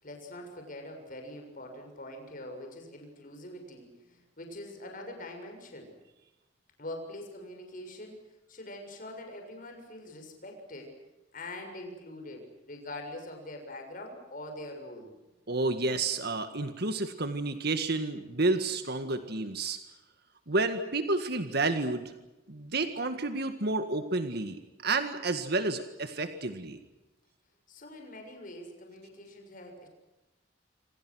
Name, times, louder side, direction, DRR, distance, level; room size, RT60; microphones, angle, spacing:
voice 1, 0.0-5.9 6.8-10.9 11.3-15.1 27.7-29.9, left 1 dB, 45° left, 4 dB, 7.0 m, -44 dB
voice 2, 15.5-19.8 20.5-22.0 22.5-26.8, right 3 dB, 55° right, 8 dB, 1.8 m, -30 dB
28.0 x 26.5 x 6.4 m, 1.0 s
head